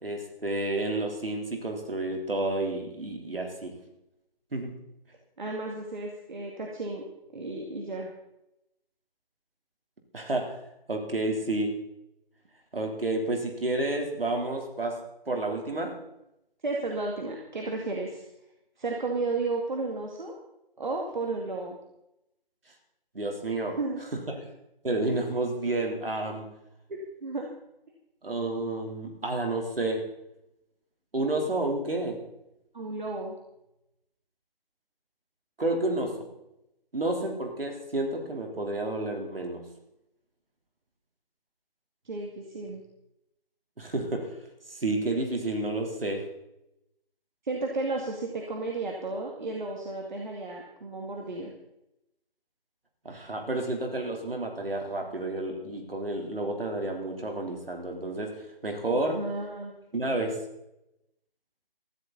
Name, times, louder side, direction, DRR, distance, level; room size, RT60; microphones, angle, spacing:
voice 1, 0.0-3.7 4.5-4.7 10.1-10.6 10.9-11.8 12.7-15.0 15.3-15.9 23.1-23.8 24.3-24.4 24.8-26.5 28.2-30.0 31.1-32.2 35.6-36.1 36.9-39.6 43.8-44.3 44.7-46.2 53.1-59.2 59.9-60.4, right 2 dB, 75° right, 3 dB, 3.7 m, -30 dB
voice 2, 5.4-7.0 7.3-8.1 16.6-18.2 18.8-20.4 20.8-21.8 23.8-24.0 26.9-27.5 32.7-33.4 42.0-42.8 47.4-51.5 59.1-59.7, right 3 dB, 55° right, 1 dB, 2.4 m, -33 dB
16.0 x 14.0 x 4.2 m, 0.87 s
figure-of-eight pair, 160°, 29 cm